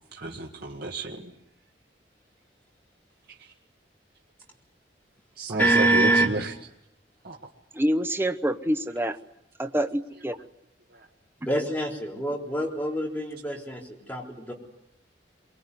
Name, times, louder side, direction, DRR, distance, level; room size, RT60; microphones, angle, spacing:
voice 1, 0.1-1.3 3.3-3.4 5.4-6.5 7.2-7.4 10.9-11.1, right 2 dB, 60° right, 0 dB, 2.0 m, -32 dB
voice 2, 5.6-6.3 11.4-14.5, right 2 dB, 10° left, -1 dB, 3.8 m, -25 dB
voice 3, 7.7-9.2 9.6-10.4, right 1 dB, 15° right, 8 dB, 0.9 m, -26 dB
23.5 x 20.5 x 9.7 m, 0.80 s
head